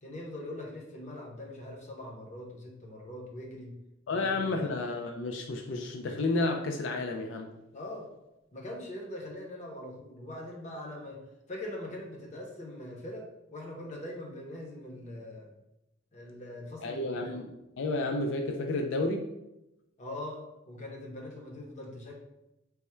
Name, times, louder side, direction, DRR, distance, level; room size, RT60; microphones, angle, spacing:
voice 1, 0.0-3.7 4.1-4.7 7.7-8.1 8.5-11.2 11.5-13.3 13.5-15.5 16.1-17.3 20.0-22.1, left 1 dB, 35° left, 0 dB, 0.7 m, -42 dB
voice 2, 4.1-7.5 16.8-17.4 17.8-19.3, left 2 dB, 65° left, 4 dB, 0.4 m, -31 dB
3.4 x 2.1 x 4.3 m, 0.90 s
head